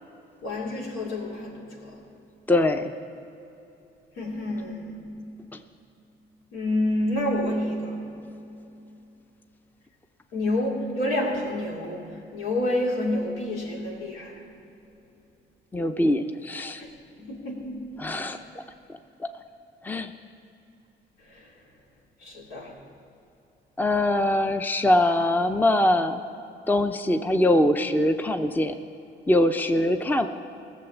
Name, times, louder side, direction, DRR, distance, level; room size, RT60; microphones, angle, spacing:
voice 1, 0.4-2.0 4.2-5.1 6.5-8.0 10.3-14.4 16.8-16.9 17.2-17.9 21.2-21.5 22.2-22.8, left 1 dB, 85° left, -2 dB, 2.7 m, -29 dB
voice 2, 2.5-2.9 5.5-5.6 15.7-16.8 18.0-18.6 18.9-19.3 19.8-20.1 23.8-26.2 26.7-28.8 29.3-30.3, left 1 dB, 10° left, 8 dB, 0.6 m, -23 dB
16.5 x 7.2 x 7.0 m, 2.8 s
cardioid pair, 90°, 20 cm